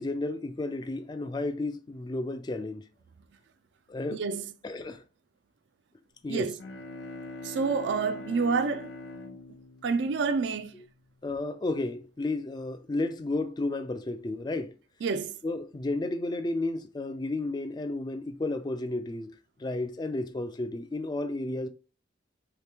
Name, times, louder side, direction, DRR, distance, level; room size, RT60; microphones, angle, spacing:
voice 1, 0.0-2.9 3.9-4.2 4.6-5.0 6.2-6.5 11.2-14.7 15.4-19.3 19.6-21.7, left 2 dB, 25° left, 0.3 m, -32 dB
voice 2, 4.1-4.5 6.3-6.6 7.4-8.9 9.8-10.7 15.0-15.4, right 4 dB, 80° right, 0.4 m, -28 dB
Bowed string instrument, 6.6-11.1, left 2 dB, 85° left, 0.6 m, -43 dB
3.2 x 2.9 x 3.4 m
head